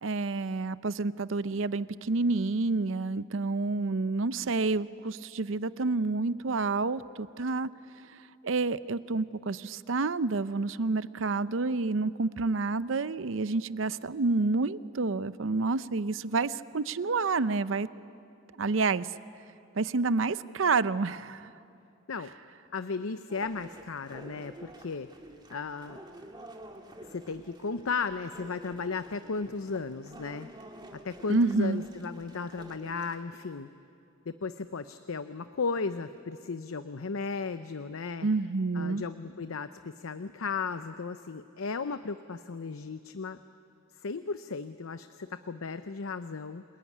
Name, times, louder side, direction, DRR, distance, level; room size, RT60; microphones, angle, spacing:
voice 1, 0.0-7.7 8.1-17.9 18.6-19.1 19.7-21.5 31.3-31.8 38.2-39.0, right 3 dB, 65° right, 16 dB, 0.6 m, -29 dB
voice 2, 22.7-25.1 25.5-26.0 27.1-30.5 31.0-33.7 34.3-38.3 38.7-43.4 44.0-46.6, left 4 dB, 85° left, 11 dB, 0.7 m, -35 dB
sound 1, 23.3-33.2, right 1 dB, 20° right, 2.0 m, -49 dB
28.0 x 20.0 x 9.8 m, 2.6 s
head